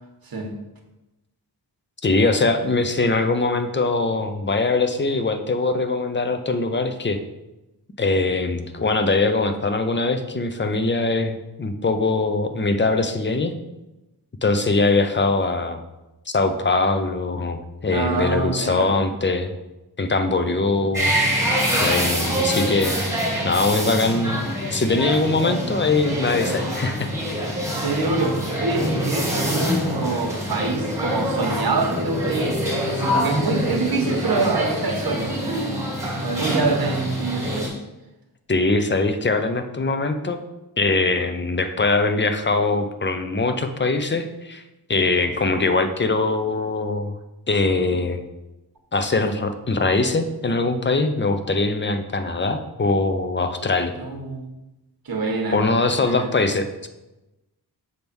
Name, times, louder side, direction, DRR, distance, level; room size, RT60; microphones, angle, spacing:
voice 1, 2.0-7.2 8.0-13.5 14.4-15.8 16.3-19.5 20.0-21.1 21.8-23.1 23.4-24.4 24.7-27.1 38.5-40.4 40.8-44.6 44.9-47.1 47.5-48.2 48.9-53.9 55.5-56.9, left 3 dB, 30° left, 7 dB, 0.7 m, -22 dB
voice 2, 17.9-19.0 20.8-20.9 21.4-21.6 25.3-25.6 27.8-32.5 32.8-35.8 36.2-37.8 54.0-54.5 55.0-55.6 55.9-56.3, right 3 dB, 60° right, 2 dB, 1.4 m, -25 dB
sound 1, 20.9-37.7, equal, 5° right, 2.2 m, -25 dB
6.7 x 3.5 x 6.1 m, 0.99 s
wide cardioid pair, 90°, 40 cm